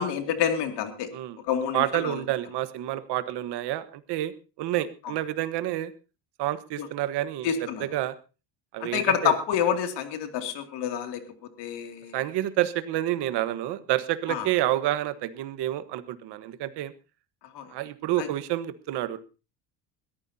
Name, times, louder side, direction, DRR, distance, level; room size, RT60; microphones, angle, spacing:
voice 1, 0.0-1.1 1.4-2.2 6.8-6.9 7.4-7.9 8.8-11.2 11.6-12.2 14.3-14.5 17.5-17.7 18.2-18.3, left 8 dB, 70° left, 6 dB, 2.5 m, -28 dB
voice 2, 1.7-4.3 4.6-5.9 6.4-7.5 7.8-8.1 8.7-9.4 12.1-16.9 17.7-19.3, right 14 dB, 65° right, 12 dB, 1.4 m, -29 dB
21.5 x 14.0 x 2.8 m, 0.32 s
cardioid pair, 125°, 43 cm